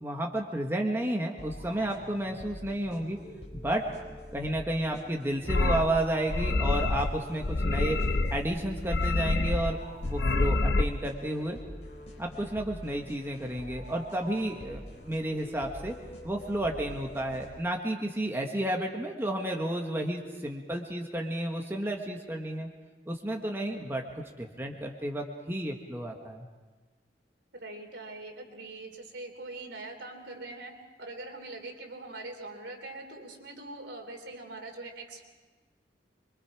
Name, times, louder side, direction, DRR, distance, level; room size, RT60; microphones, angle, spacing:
voice 1, 0.0-3.2 3.5-3.9 4.3-8.0 8.3-11.6 12.2-15.9 16.2-22.7 23.1-26.5, right 1 dB, 15° right, 1 dB, 1.5 m, -32 dB
sound 1, 1.4-17.9, left 1 dB, 40° left, 4.2 m, -46 dB
sound 2, 5.5-5.8 6.3-7.1 7.4-8.4 8.7-9.7 10.0-10.8, left 2 dB, 65° left, 0.8 m, -27 dB
voice 2, 27.5-30.7 31.0-35.2, right 2 dB, 80° right, 3 dB, 3.1 m, -42 dB
25.5 x 23.0 x 4.8 m, 1.3 s
head